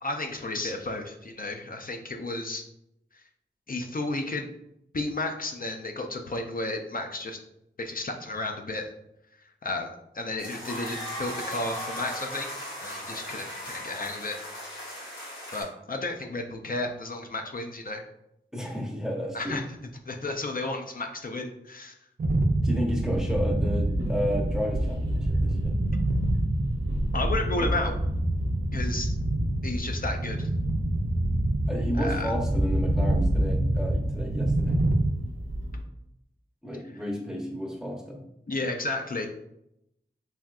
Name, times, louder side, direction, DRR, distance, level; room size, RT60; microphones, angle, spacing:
voice 1, 0.0-2.6 3.7-4.5 4.9-7.4 7.8-8.9 9.6-14.4 15.5-18.0 19.3-19.6 20.1-21.9 27.1-27.9 28.7-29.1 29.6-30.5 31.9-32.3 38.5-39.3, left 2 dB, 45° left, 4 dB, 0.4 m, -32 dB
sound 1, 10.4-15.6, equal, 85° left, 1.2 m, -37 dB
voice 2, 18.5-19.6 22.6-25.8 31.7-34.8 36.6-38.2, equal, 5° right, 0 dB, 0.7 m, -32 dB
sound 2, 22.2-35.1, right 1 dB, 45° right, 0.4 m, -27 dB
sound 3, 23.1-35.8, equal, 85° right, 0.7 m, -34 dB
3.4 x 2.6 x 2.3 m, 0.80 s
wide cardioid pair, 55°, 20 cm